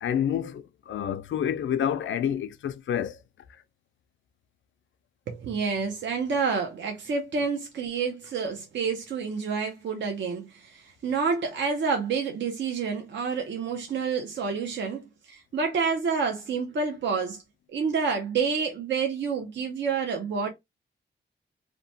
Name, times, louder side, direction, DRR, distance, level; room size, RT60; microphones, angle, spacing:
voice 1, 0.0-3.2, left 9 dB, 90° left, 0.4 m, -28 dB
voice 2, 5.3-17.4 17.7-20.5, right 5 dB, 70° right, 0.6 m, -28 dB
2.9 x 2.1 x 2.6 m
wide cardioid pair, 130°, 19 cm